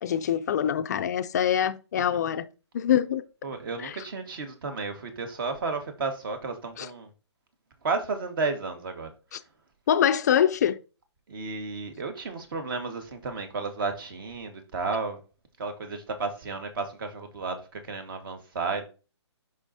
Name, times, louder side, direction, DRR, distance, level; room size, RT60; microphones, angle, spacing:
voice 1, 0.0-2.4 2.7-3.2 3.8-4.0 6.8-6.9 9.3-9.4 9.9-10.8, left 9 dB, 35° left, 0.4 m, -24 dB
voice 2, 3.4-7.1 7.8-9.1 11.3-15.2 15.6-18.8, right 4 dB, 50° right, 1.5 m, -32 dB
7.1 x 5.5 x 2.7 m
hypercardioid pair, 150°, 15 cm